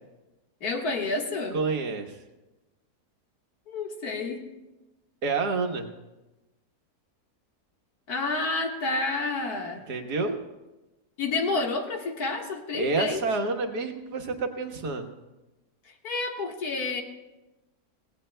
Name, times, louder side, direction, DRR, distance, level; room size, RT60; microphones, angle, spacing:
voice 1, 0.6-1.6 3.7-4.5 8.1-9.8 11.2-13.2 16.0-17.0, left 3 dB, 75° left, 1 dB, 2.1 m, -29 dB
voice 2, 1.5-2.2 5.2-5.9 9.9-10.4 12.7-15.1, right 3 dB, 85° right, 4 dB, 1.9 m, -28 dB
27.0 x 17.5 x 2.2 m, 1.1 s
omnidirectional pair, 1.7 m